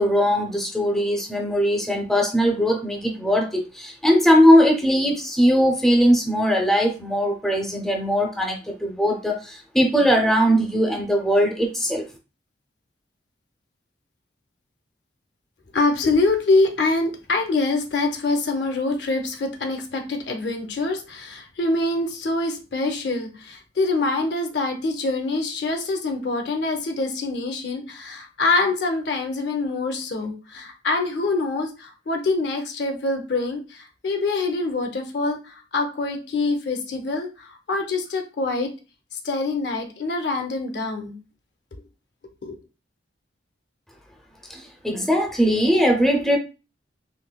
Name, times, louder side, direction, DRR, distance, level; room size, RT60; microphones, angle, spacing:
voice 1, 0.0-12.0 44.5-46.4, equal, ahead, 1 dB, 0.4 m, -20 dB
voice 2, 15.7-38.7 39.1-41.2 42.4-42.6, left 3 dB, 65° left, 4 dB, 0.6 m, -25 dB
3.8 x 2.6 x 2.2 m, 0.32 s
head